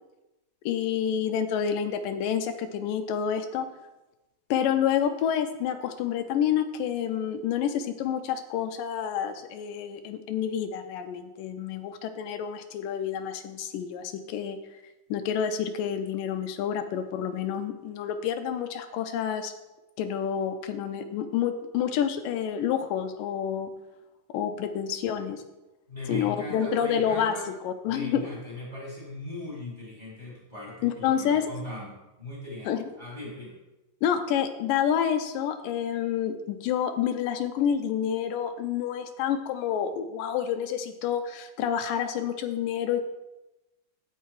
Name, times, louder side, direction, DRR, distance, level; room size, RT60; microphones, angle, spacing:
voice 1, 0.7-3.7 4.5-14.6 15.1-19.5 20.0-23.7 24.3-25.4 26.1-27.4 27.6-28.3 30.8-31.5 32.7-32.8 34.0-43.0, left 8 dB, 85° left, 8 dB, 2.4 m, -28 dB
voice 2, 25.9-27.5 27.8-33.6, left 1 dB, 10° right, -6 dB, 3.9 m, -39 dB
15.0 x 5.5 x 4.7 m, 1.0 s
omnidirectional pair, 3.9 m